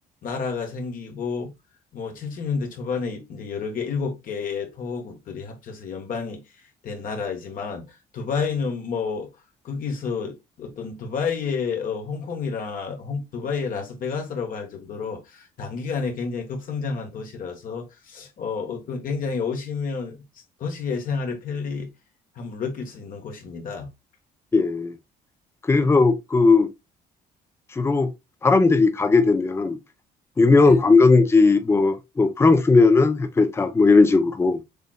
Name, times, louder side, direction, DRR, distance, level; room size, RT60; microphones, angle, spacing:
voice 1, 0.2-1.5 1.9-9.3 9.6-20.2 20.6-21.9 22.3-23.9 30.6-30.8, left 5 dB, 55° left, 1.2 m, -30 dB
voice 2, 24.5-24.9 25.7-26.7 27.8-28.1 28.4-29.8 30.4-34.6, left 3 dB, 15° left, 0.6 m, -17 dB
6.8 x 3.0 x 2.2 m
cardioid pair, 110°, 17 cm